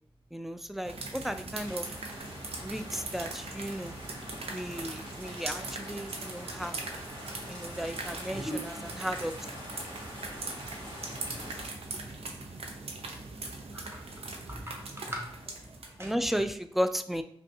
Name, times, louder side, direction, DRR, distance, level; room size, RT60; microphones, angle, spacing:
voice 1, 0.3-1.9 2.6-4.0 4.5-6.8 7.5-9.3 16.0-17.2, equal, ahead, 10 dB, 0.3 m, -34 dB
sound 1, 0.8-16.1, right 3 dB, 85° right, 0.5 m, -41 dB
sound 2, 1.6-11.7, equal, 50° right, 1.4 m, -45 dB
voice 2, 8.3-8.6 10.2-10.3 11.3-11.5 13.7-14.0 14.4-15.4 16.0-16.1, equal, 25° right, 0 dB, 1.1 m, -40 dB
5.0 x 2.3 x 2.8 m, 0.66 s
cardioid pair, 45°, 10 cm